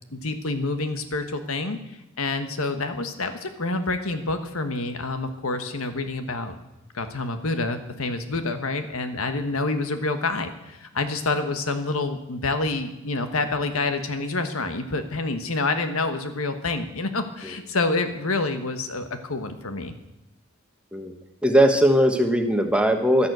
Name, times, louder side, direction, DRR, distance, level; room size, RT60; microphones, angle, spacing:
voice 1, 0.1-6.6 6.9-20.0, left 3 dB, 85° left, 8 dB, 1.5 m, -27 dB
voice 2, 21.4-23.3, equal, 5° right, 5 dB, 1.3 m, -19 dB
11.5 x 11.0 x 8.1 m, 0.93 s
head